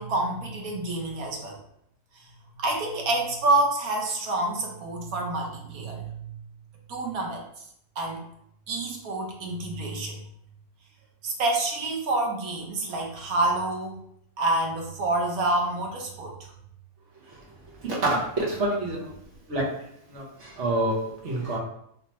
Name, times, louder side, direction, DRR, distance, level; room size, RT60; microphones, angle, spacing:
voice 1, 0.0-1.6 2.6-6.4 6.9-7.4 8.0-8.2 8.7-10.2 11.2-14.0 14.4-16.5, right 2 dB, 85° right, 0 dB, 1.3 m, -27 dB
voice 2, 18.0-19.0 19.5-19.6 20.1-21.6, right 2 dB, 60° right, -4 dB, 1.2 m, -27 dB
3.3 x 2.7 x 2.9 m, 0.72 s
omnidirectional pair, 1.5 m